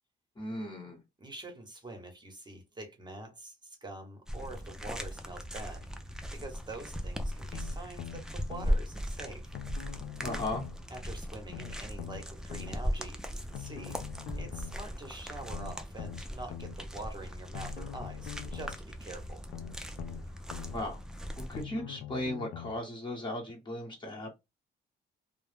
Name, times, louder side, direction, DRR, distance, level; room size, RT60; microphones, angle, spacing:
voice 1, 0.4-1.0 10.2-10.6 20.7-21.0 21.4-24.3, left 1 dB, 25° left, 1.1 m, -36 dB
voice 2, 1.2-5.9 6.3-9.5 10.9-14.0 14.3-19.4, right 2 dB, 20° right, 1.0 m, -45 dB
sound 1, 4.3-21.6, equal, 5° right, 0.4 m, -38 dB
sound 2, 7.5-8.8 9.5-10.8 11.5-12.8 13.5-14.8 15.5-16.8 17.5-18.8 19.5-20.8 21.5-22.8 23.5-23.6, left 11 dB, 70° left, 0.4 m, -43 dB
2.2 x 2.0 x 3.2 m
cardioid pair, 90°, 20 cm